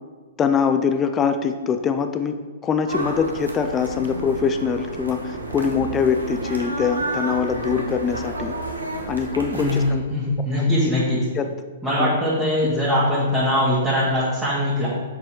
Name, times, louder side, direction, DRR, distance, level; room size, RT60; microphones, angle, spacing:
voice 1, 0.4-2.3 2.6-8.5 9.1-10.0 10.6-10.9 11.3-11.5 12.0-12.2, left 6 dB, 20° left, 8 dB, 0.4 m, -23 dB
sound 1, 2.9-9.9, right 2 dB, 80° right, 1.1 m, -30 dB
voice 2, 9.5-11.2 11.8-14.9, left 1 dB, 5° right, -11 dB, 2.0 m, -21 dB
6.6 x 4.6 x 4.4 m, 1.4 s
figure-of-eight pair, 110°, 0 cm